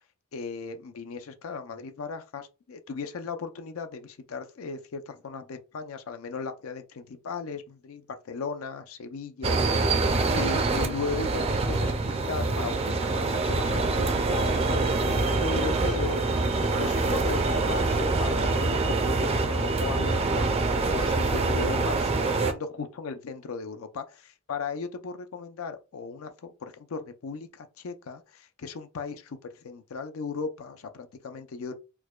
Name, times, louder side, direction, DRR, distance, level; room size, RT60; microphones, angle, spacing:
voice 1, 0.3-10.0 10.3-29.4 29.6-31.7, left 4 dB, 90° left, 0.5 m, -37 dB
sound 1, 9.4-22.5, right 3 dB, 30° right, 0.4 m, -25 dB
4.6 x 2.1 x 2.3 m
head